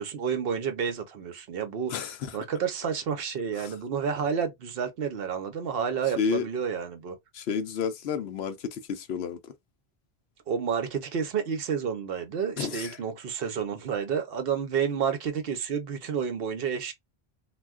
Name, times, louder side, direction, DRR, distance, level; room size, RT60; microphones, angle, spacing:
voice 1, 0.0-2.0 2.3-7.2 10.5-16.9, right 7 dB, 65° right, 0.8 m, -30 dB
voice 2, 1.9-2.4 3.6-3.7 6.2-6.5 7.3-9.5 12.6-13.0, left 6 dB, 75° left, 0.8 m, -31 dB
2.4 x 2.2 x 3.4 m
omnidirectional pair, 1.1 m